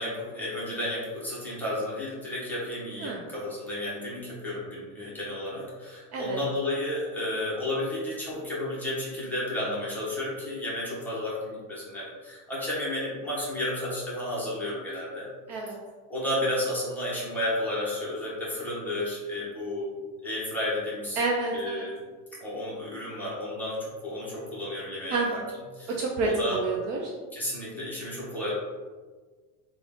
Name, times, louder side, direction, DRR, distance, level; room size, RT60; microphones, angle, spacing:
voice 1, 0.0-15.3 16.1-20.0 20.2-21.2 21.5-21.9 22.3-25.4 25.7-25.9 26.2-26.6 27.3-28.5, left 1 dB, 5° left, -8 dB, 0.9 m, -32 dB
voice 2, 21.2-21.8 25.1-25.4 26.0-27.1, right 3 dB, 45° right, -1 dB, 0.5 m, -29 dB
3.7 x 2.4 x 3.5 m, 1.4 s
cardioid pair, 160°, 38 cm